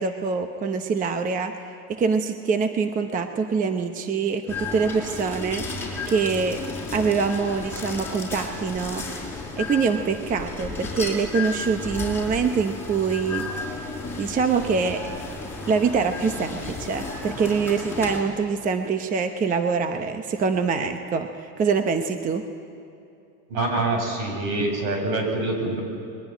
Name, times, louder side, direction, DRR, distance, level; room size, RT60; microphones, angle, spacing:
voice 1, 0.0-6.6 6.9-9.0 9.6-13.5 14.2-15.0 15.7-22.4, right 5 dB, 15° right, 7 dB, 0.8 m, -24 dB
sound 1, 4.5-18.2, left 3 dB, 5° left, 5.4 m, -33 dB
voice 2, 23.5-25.8, right 2 dB, 65° right, 3 dB, 7.9 m, -25 dB
29.5 x 22.0 x 9.2 m, 2.6 s
supercardioid pair, 150°, 48 cm